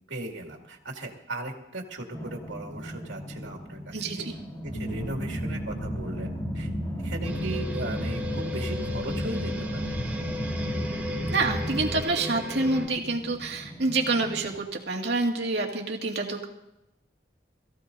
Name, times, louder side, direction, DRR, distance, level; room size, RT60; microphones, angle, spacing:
voice 1, 0.1-4.3 4.6-6.7 7.0-9.8, right 2 dB, 85° right, 0 dB, 2.2 m, -37 dB
sound 1, 2.1-14.6, equal, 20° left, 1.5 m, -40 dB
voice 2, 3.9-4.3 11.3-16.4, right 3 dB, 65° right, 0 dB, 2.2 m, -27 dB
sound 2, 4.6-12.0, equal, 55° left, 2.6 m, -33 dB
sound 3, 7.2-12.9, left 1 dB, 10° right, 4.1 m, -36 dB
22.0 x 15.0 x 2.7 m, 0.90 s
head